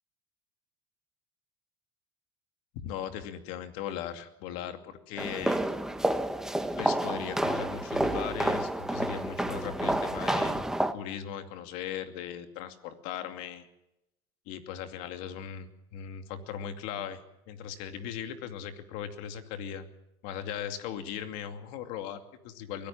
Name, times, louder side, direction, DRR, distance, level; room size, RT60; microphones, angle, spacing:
voice 1, 2.7-5.7 6.8-10.6 10.9-13.7 14.5-17.2 17.5-19.9 20.2-22.9, left 9 dB, 75° left, 8 dB, 2.5 m, -38 dB
sound 1, 5.2-10.9, right 1 dB, 5° right, 1.3 m, -29 dB
23.5 x 16.5 x 7.3 m, 0.87 s
supercardioid pair, 120°, 14 cm